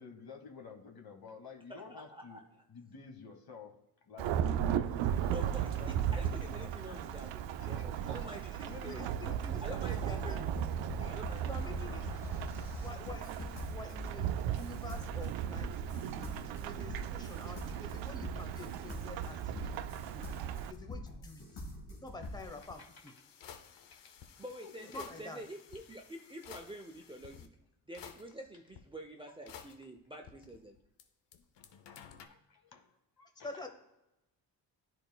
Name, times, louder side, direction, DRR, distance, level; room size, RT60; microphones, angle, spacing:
voice 1, 0.0-2.4 2.7-7.1 7.6-8.3 8.6-9.4 11.0-11.1 11.6-11.7 16.0-16.1 17.7-17.8 18.5-18.6 22.6-23.1 23.9-24.1 24.6-24.9 29.2-29.6 32.2-33.5, left 5 dB, 50° left, 5 dB, 1.4 m, -52 dB
voice 2, 1.7-2.4 5.3-9.0 9.6-10.5 11.0-11.5 24.4-27.5 27.9-30.8, right 1 dB, 10° right, 2 dB, 0.6 m, -47 dB
Thunderstorm / Rain, 4.2-20.7, right 9 dB, 75° right, 0.5 m, -36 dB
voice 3, 8.6-10.4 11.4-12.2 12.8-20.4 20.7-21.6 21.9-23.1 24.9-25.4 33.3-33.7, left 2 dB, 10° left, 6 dB, 1.0 m, -48 dB
sound 1, 9.9-22.5, left 1 dB, 85° left, 2.0 m, -45 dB
sound 2, 22.2-27.5 27.9-28.8 29.5-31.0 31.3-32.3, left 8 dB, 65° left, 0.8 m, -54 dB
10.5 x 4.5 x 2.3 m, 0.90 s
supercardioid pair, 55°, 46 cm